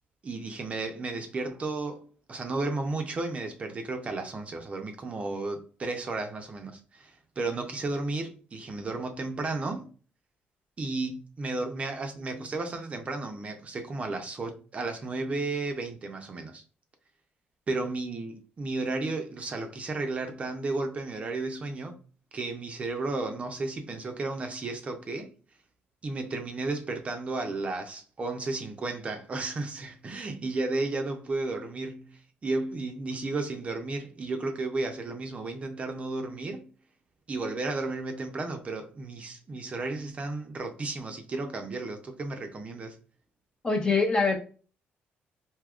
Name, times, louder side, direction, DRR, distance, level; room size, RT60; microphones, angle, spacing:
voice 1, 0.2-9.9 10.8-16.6 17.7-22.0 22.3-25.3 26.0-36.7 37.3-43.0, right 3 dB, 30° right, 0.5 m, -33 dB
voice 2, 43.6-44.4, left 4 dB, 20° left, 0.6 m, -23 dB
3.5 x 2.7 x 2.3 m
cardioid pair, 120°, 4 cm